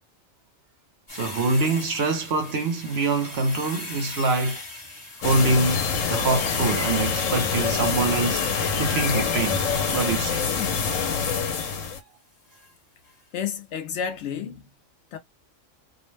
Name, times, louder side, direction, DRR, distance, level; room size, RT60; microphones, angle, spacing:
sound 1, 1.1-11.2 12.5-12.7 13.0-13.1, left 2 dB, 20° left, 1.0 m, -41 dB
voice 1, 1.1-4.6 5.2-8.5 8.8-9.6 9.9-10.4, right 3 dB, 60° right, 0.9 m, -24 dB
sound 2, 5.2-12.0, left 6 dB, 90° left, 1.1 m, -25 dB
voice 2, 13.3-14.7 15.1-15.2, left 7 dB, 70° left, 0.9 m, -31 dB
2.5 x 2.1 x 3.2 m
omnidirectional pair, 1.3 m